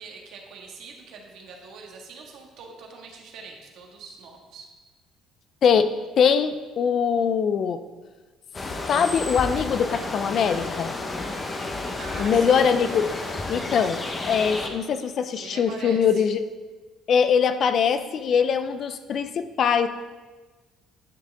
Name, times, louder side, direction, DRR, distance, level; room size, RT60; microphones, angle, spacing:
voice 1, 0.0-4.7 12.0-12.7 15.4-16.2, right 4 dB, 70° right, 0 dB, 1.7 m, -43 dB
voice 2, 6.2-7.8 8.9-10.9 12.2-13.1 13.5-16.4 17.1-19.9, left 7 dB, 55° left, 11 dB, 0.6 m, -22 dB
sound 1, 8.5-14.7, left 2 dB, 25° left, 1.1 m, -31 dB
11.0 x 6.5 x 3.6 m, 1.3 s
cardioid pair, 100°, 0 cm